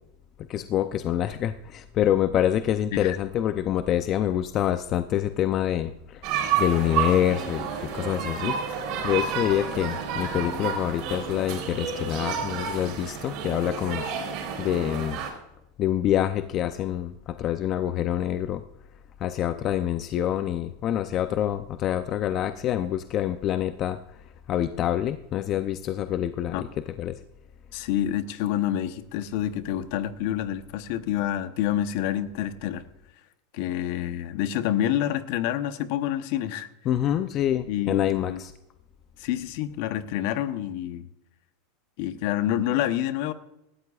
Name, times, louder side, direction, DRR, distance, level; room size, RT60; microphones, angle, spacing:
voice 1, 0.5-6.3 6.6-14.1 14.6-15.2 15.8-18.6 19.2-24.0 24.5-26.7 27.0-27.2 36.9-38.5, left 11 dB, 40° left, 10 dB, 0.6 m, -26 dB
sound 1, 6.2-15.3, right 7 dB, 55° right, 3.9 m, -30 dB
voice 2, 27.7-32.9 33.5-36.7 37.7-38.4 39.2-41.0 42.0-43.3, left 11 dB, 65° left, 11 dB, 1.0 m, -28 dB
18.0 x 13.5 x 2.4 m, 0.86 s
supercardioid pair, 125°, 0 cm